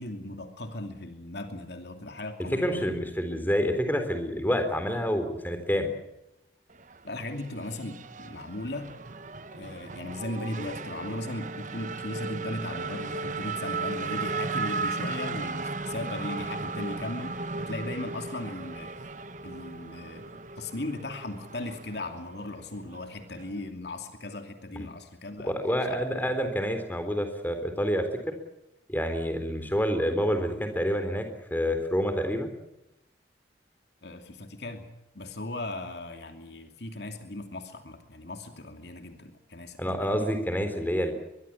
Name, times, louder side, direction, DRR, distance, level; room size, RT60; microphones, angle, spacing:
voice 1, 0.0-2.9 7.0-8.9 9.5-19.1 19.4-20.3 20.6-25.5 25.9-26.0 34.0-34.9 35.1-40.3, left 2 dB, 70° left, 6 dB, 2.7 m, -37 dB
voice 2, 2.6-5.9 24.7-24.9 25.4-28.1 28.9-32.5 39.8-41.1, equal, 10° left, 7 dB, 3.7 m, -28 dB
Race car auto racing / Accelerating revving vroom, 6.7-23.7, right 3 dB, 45° right, 1.1 m, -36 dB
23.0 x 23.0 x 7.2 m, 0.89 s
head